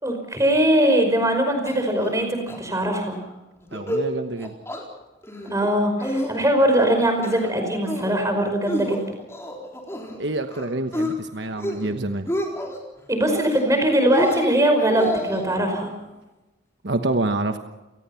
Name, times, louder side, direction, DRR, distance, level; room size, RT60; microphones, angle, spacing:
voice 1, 0.0-3.2 5.5-9.0 13.1-15.9, right 1 dB, 15° right, 5 dB, 5.2 m, -21 dB
sound 1, 1.7-2.2 2.5-2.6 2.9-3.2 3.6-4.1 4.4-4.8 5.2-5.7 6.0-6.7 7.1-7.5 7.9-8.2 8.7-10.2 10.5-11.1 11.5-11.9 12.1-12.8 13.2-13.8 14.1-15.4, left 1 dB, 15° left, 4.1 m, -29 dB
voice 2, 3.7-4.5 10.2-12.3 16.8-17.6, right 2 dB, 60° right, 7 dB, 1.2 m, -27 dB
29.5 x 19.0 x 5.8 m, 1.1 s
head